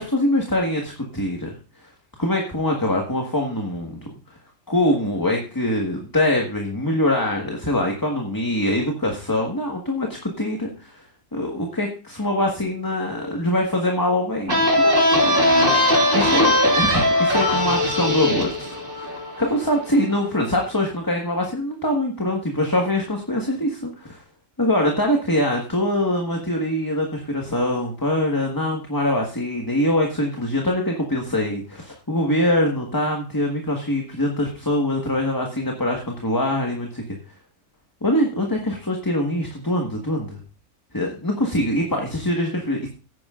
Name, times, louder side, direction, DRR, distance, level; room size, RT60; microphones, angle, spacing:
voice 1, 0.0-1.9 2.2-4.0 4.3-4.4 4.7-19.1 19.4-24.2 24.6-37.0 38.0-40.4 40.9-42.9, left 1 dB, 15° left, 1 dB, 1.5 m, -23 dB
sound 1, 14.5-19.9, left 1 dB, 45° right, 2.7 m, -19 dB
17.0 x 9.3 x 2.5 m, 0.34 s
omnidirectional pair, 1.3 m